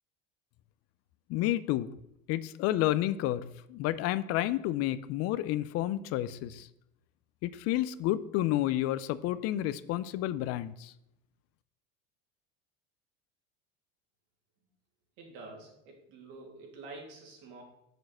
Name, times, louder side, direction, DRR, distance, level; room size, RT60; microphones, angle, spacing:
voice 1, 1.3-1.9 2.3-6.7 7.4-10.9, left 14 dB, 55° left, 15 dB, 0.5 m, -30 dB
voice 2, 15.2-17.6, right 3 dB, 70° right, 0 dB, 2.6 m, -48 dB
6.3 x 4.9 x 6.3 m, 0.81 s
supercardioid pair, 110°, 30 cm